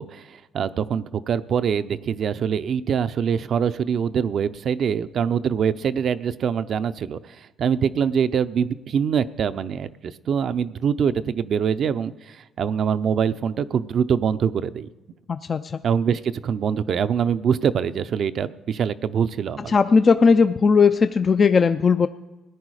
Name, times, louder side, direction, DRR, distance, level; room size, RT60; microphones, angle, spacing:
voice 1, 0.0-14.9 15.8-19.8, right 7 dB, 60° right, 13 dB, 0.6 m, -24 dB
voice 2, 15.3-15.8 19.7-22.1, left 5 dB, 45° left, 9 dB, 0.5 m, -17 dB
17.0 x 9.7 x 4.9 m, 1.2 s
supercardioid pair, 60°, 0 cm